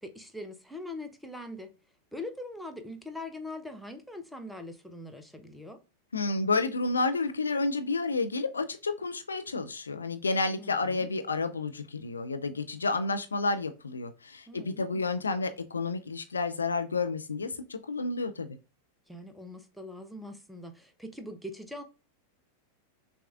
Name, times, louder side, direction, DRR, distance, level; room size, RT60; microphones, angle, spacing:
voice 1, 0.0-1.7 2.1-5.8 10.6-11.1 14.5-15.1 19.1-21.8, left 1 dB, ahead, 0.5 m, -42 dB
voice 2, 6.1-18.5, left 3 dB, 75° left, 0.4 m, -30 dB
6.0 x 2.3 x 2.3 m
figure-of-eight pair, 90°, 0 cm